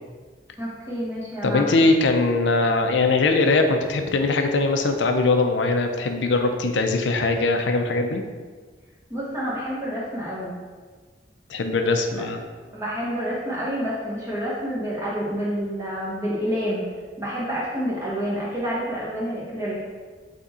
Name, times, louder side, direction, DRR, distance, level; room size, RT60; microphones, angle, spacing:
voice 1, 0.6-1.9 9.1-10.5 12.1-12.2 12.7-16.9 17.2-19.8, equal, 15° right, -7 dB, 0.9 m, -28 dB
voice 2, 1.4-8.2 11.5-12.4, left 3 dB, 90° left, 5 dB, 0.5 m, -21 dB
3.7 x 3.5 x 4.2 m, 1.5 s
head